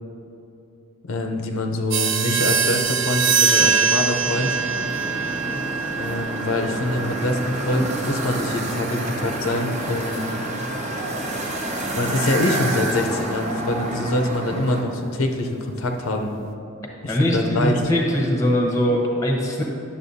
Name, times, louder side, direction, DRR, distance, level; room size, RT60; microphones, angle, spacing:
voice 1, 1.0-4.6 6.0-10.3 11.9-16.3 17.0-17.8, left 1 dB, 75° left, 4 dB, 0.6 m, -25 dB
sound 1, 1.9-12.1, right 6 dB, 60° right, 0.5 m, -25 dB
sound 2, 4.2-14.8, right 1 dB, 35° right, 0.8 m, -28 dB
voice 2, 17.1-19.6, equal, 15° left, 0 dB, 0.9 m, -21 dB
11.0 x 7.0 x 2.7 m, 2.8 s
head